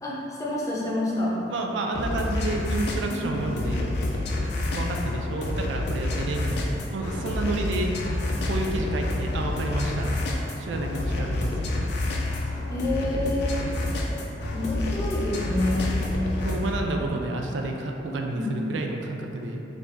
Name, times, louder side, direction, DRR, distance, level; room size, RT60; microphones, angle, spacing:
voice 1, 0.0-1.4 3.1-3.5 12.7-13.6 14.5-15.9 18.3-18.5, left 1 dB, 20° left, -7 dB, 0.6 m, -28 dB
voice 2, 1.5-3.9 4.7-7.9 8.4-10.1 10.6-11.9 16.4-19.6, right 2 dB, 90° right, 2 dB, 0.4 m, -30 dB
sound 1, 1.9-16.7, left 2 dB, 65° left, 0.5 m, -28 dB
3.3 x 2.6 x 3.6 m, 2.9 s
head